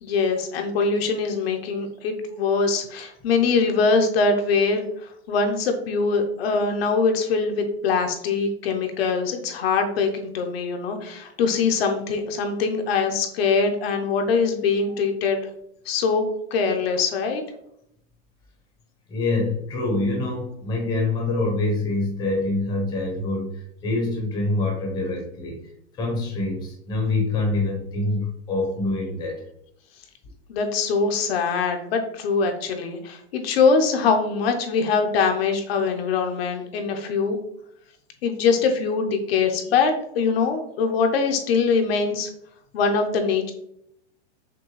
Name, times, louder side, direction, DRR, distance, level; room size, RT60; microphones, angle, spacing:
voice 1, 0.0-15.4 15.8-16.2 16.5-17.4 30.5-37.4 38.2-42.3 42.7-43.5, left 4 dB, 55° left, 4 dB, 0.7 m, -23 dB
voice 2, 19.1-25.6 26.0-29.4, left 2 dB, 10° left, -1 dB, 0.7 m, -25 dB
5.9 x 2.2 x 3.1 m, 0.72 s
supercardioid pair, 175°, 35 cm